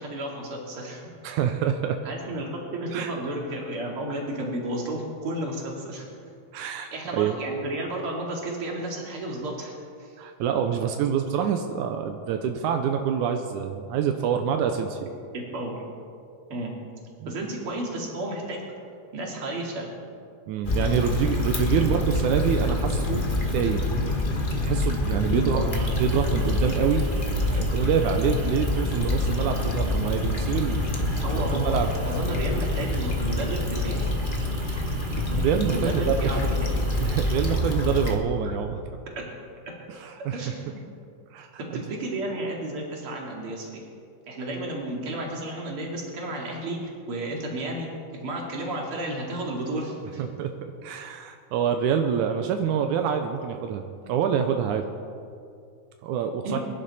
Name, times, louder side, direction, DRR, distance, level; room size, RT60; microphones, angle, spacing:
voice 1, 0.0-1.1 2.0-6.1 6.9-9.7 10.0-10.1 15.3-15.8 16.5-16.7 17.2-18.6 19.1-19.9 21.7-21.8 25.3-25.7 31.2-31.8 32.0-34.1 35.7-36.7 39.9-40.8 41.6-43.8 44.3-47.9 48.2-50.3 56.4-56.6, right 1 dB, 45° right, -1 dB, 3.0 m, -32 dB
voice 2, 1.2-2.0 2.9-3.1 6.5-7.4 10.2-15.1 17.2-17.3 20.5-23.2 23.5-23.8 24.6-25.6 26.0-27.1 27.5-30.8 31.3-31.9 35.3-36.4 37.0-38.8 39.9-40.5 41.3-41.8 50.2-50.5 50.8-54.9 56.0-56.6, right 8 dB, 85° right, 6 dB, 2.2 m, -26 dB
Stream / Traffic noise roadway noise / Trickle dribble, 20.6-38.2, left 2 dB, 40° left, 0.7 m, -26 dB
sound 1, 25.7-37.6, right 7 dB, 70° right, 1.6 m, -40 dB
23.0 x 11.0 x 4.2 m, 2.4 s
omnidirectional pair, 3.5 m